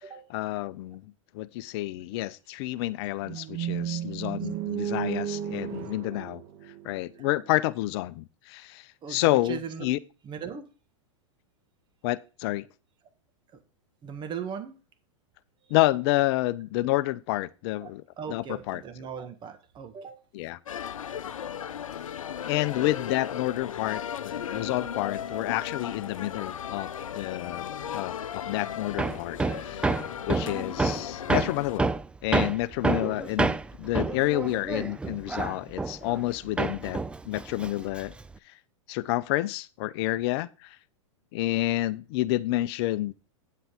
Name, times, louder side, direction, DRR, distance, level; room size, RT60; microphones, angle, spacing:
voice 1, 0.3-6.4 6.8-10.0 12.0-12.7 15.7-18.0 18.3-18.8 20.3-20.6 22.5-27.7 27.9-29.9 30.3-31.9 32.2-37.0 37.2-38.1 38.9-40.8 41.3-43.1, left 17 dB, 50° left, 0.7 m, -29 dB
sound 1, 3.2-7.4, right 10 dB, 45° right, 1.4 m, -33 dB
voice 2, 9.0-9.9 10.2-10.7 13.5-13.6 14.0-14.8 17.8-17.9 18.2-20.2, right 7 dB, 30° right, 1.6 m, -38 dB
sound 2, 20.7-31.8, left 8 dB, 90° left, 0.6 m, -36 dB
Hammer, 29.0-36.3 36.6-38.3, right 3 dB, 5° right, 0.3 m, -28 dB
9.3 x 7.8 x 3.6 m
hypercardioid pair, 115°, 17 cm